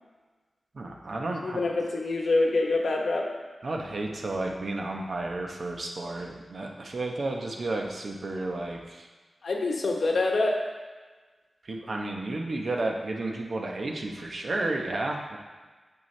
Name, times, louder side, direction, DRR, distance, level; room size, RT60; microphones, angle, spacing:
voice 1, 0.7-1.6 3.6-9.1 11.6-15.4, right 2 dB, 60° right, 1 dB, 0.9 m, -32 dB
voice 2, 1.4-3.3 9.4-10.6, left 2 dB, 75° left, 0 dB, 1.0 m, -25 dB
6.8 x 6.6 x 3.2 m, 1.3 s
wide cardioid pair, 100°, 0 cm